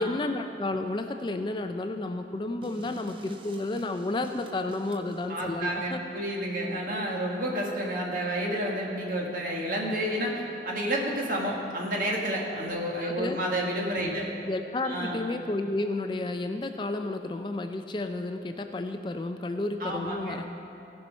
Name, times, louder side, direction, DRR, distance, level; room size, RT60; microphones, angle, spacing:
voice 1, 0.0-6.0 13.0-13.4 14.0-20.4, left 2 dB, 25° left, 7 dB, 0.3 m, -32 dB
sound 1, 2.6-5.3, right 1 dB, 30° right, 0.6 m, -44 dB
voice 2, 5.3-14.3 14.8-15.2 19.8-20.4, right 1 dB, 50° right, -2 dB, 1.6 m, -30 dB
16.5 x 5.6 x 5.4 m, 2.8 s
head